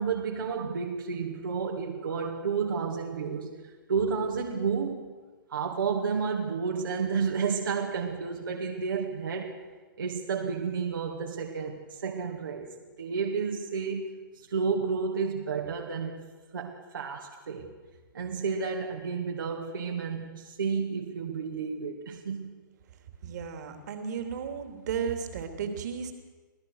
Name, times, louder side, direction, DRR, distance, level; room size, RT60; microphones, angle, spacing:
voice 1, 0.0-5.1 5.5-9.6 10.0-16.2 16.5-17.7 18.1-22.5, right 5 dB, 75° right, 0 dB, 2.5 m, -31 dB
voice 2, 23.2-26.1, right 7 dB, 55° right, 6 dB, 3.2 m, -34 dB
27.5 x 17.0 x 6.6 m, 1.3 s
hypercardioid pair, 125°, 11 cm